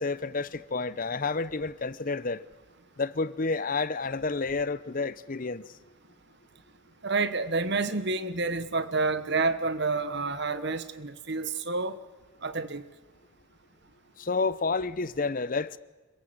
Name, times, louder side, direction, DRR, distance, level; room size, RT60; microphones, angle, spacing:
voice 1, 0.0-2.4 3.0-5.7 14.2-15.8, left 4 dB, 40° left, 0.7 m, -30 dB
voice 2, 7.0-12.0 12.4-12.9, right 3 dB, 55° right, 1.2 m, -29 dB
26.5 x 15.5 x 7.9 m
head